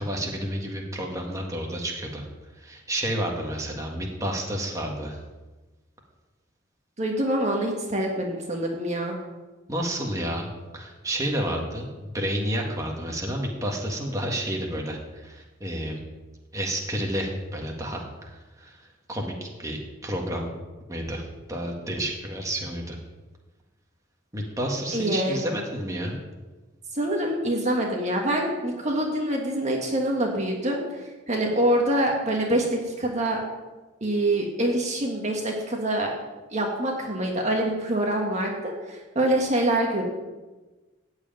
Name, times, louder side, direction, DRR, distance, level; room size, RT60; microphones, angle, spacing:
voice 1, 0.0-2.3 2.5-5.2 9.7-10.5 10.7-16.0 16.5-20.5 20.9-23.0 24.3-26.2, right 1 dB, 15° right, 0 dB, 1.7 m, -30 dB
voice 2, 7.0-9.2 24.9-25.4 26.9-33.4 34.0-36.1 36.5-40.0, right 1 dB, 35° right, 0 dB, 1.5 m, -25 dB
14.5 x 4.8 x 9.1 m, 1.2 s
head